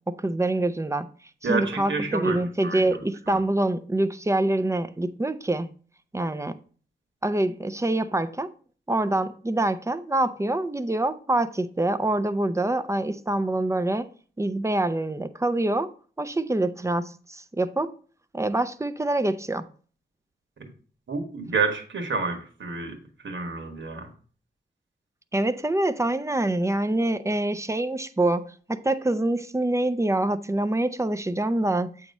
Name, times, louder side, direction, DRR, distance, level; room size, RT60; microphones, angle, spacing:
voice 1, 0.1-1.1 1.4-5.7 6.1-6.6 7.2-8.5 8.9-14.1 14.4-15.9 16.2-17.9 18.3-19.7 25.3-32.0, right 1 dB, 15° right, 0.5 m, -25 dB
voice 2, 1.4-2.8 3.3-3.4 20.6-20.7 21.1-22.9 23.2-24.1, right 4 dB, 80° right, 1.5 m, -29 dB
8.2 x 3.0 x 5.3 m
wide cardioid pair, 90°, 19 cm